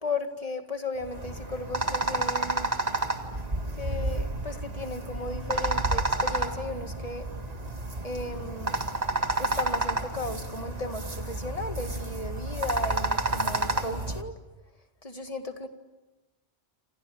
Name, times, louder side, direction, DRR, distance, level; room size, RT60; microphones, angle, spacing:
voice 1, 0.0-2.7 3.8-7.3 8.0-8.8 9.4-14.3 15.0-15.7, left 2 dB, 35° left, 7 dB, 2.1 m, -35 dB
sound 1, 1.0-14.2, right 2 dB, 40° right, 2.1 m, -30 dB
29.5 x 26.5 x 7.2 m, 1.1 s
omnidirectional pair, 1.1 m